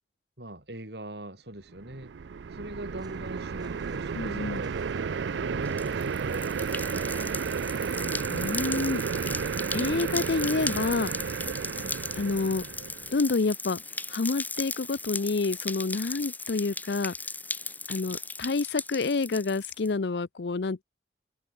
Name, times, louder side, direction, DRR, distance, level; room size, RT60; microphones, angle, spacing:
voice 1, 0.4-2.1 2.5-4.8 5.2-7.4 11.7-12.0, right 1 dB, 65° right, 4.3 m, -42 dB
sound 1, 1.8-13.2, right 6 dB, 85° right, 0.4 m, -32 dB
sound 2, 3.0-8.2, right 2 dB, 25° right, 6.5 m, -57 dB
voice 2, 4.2-4.6 8.3-9.0 9.7-11.1 12.2-12.6 13.1-13.8 14.1-17.1 17.9-20.8, left 3 dB, 70° left, 0.6 m, -28 dB
sound 3, 5.6-19.9, left 3 dB, 10° left, 3.3 m, -37 dB
head